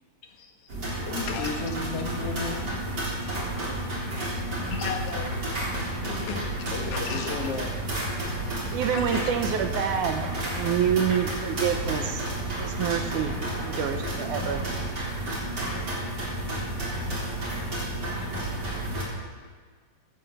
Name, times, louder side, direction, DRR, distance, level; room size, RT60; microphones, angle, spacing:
voice 1, 0.2-0.8 1.3-1.5 4.7-5.7 6.3-6.4 6.9-7.4 8.9-9.3 18.9-19.0, left 6 dB, 75° left, 3 dB, 3.2 m, -36 dB
sound 1, 0.7-19.0, right 1 dB, 30° right, 4.1 m, -31 dB
voice 2, 1.1-2.7 6.1-7.7, left 4 dB, 60° left, 1 dB, 1.8 m, -34 dB
voice 3, 8.7-10.2 10.5-12.2 12.6-13.3 13.6-14.6, right 8 dB, 70° right, 6 dB, 2.2 m, -27 dB
16.5 x 9.1 x 6.8 m, 1.5 s
omnidirectional pair, 4.0 m